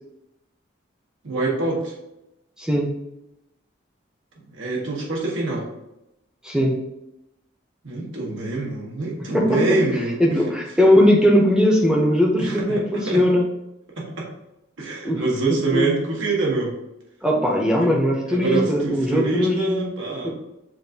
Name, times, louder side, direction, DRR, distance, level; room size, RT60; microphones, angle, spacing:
voice 1, 1.2-1.9 4.5-5.7 7.8-10.4 12.4-13.3 14.0-14.3 14.8-16.7 17.8-17.9 18.3-20.3, right 3 dB, 80° right, -2 dB, 1.1 m, -25 dB
voice 2, 2.6-2.9 6.4-6.8 9.3-9.8 10.2-13.5 15.0-15.2 15.5-16.0 17.2-19.9 20.2-20.3, equal, 5° right, -1 dB, 0.7 m, -19 dB
7.3 x 2.5 x 2.8 m, 0.88 s
head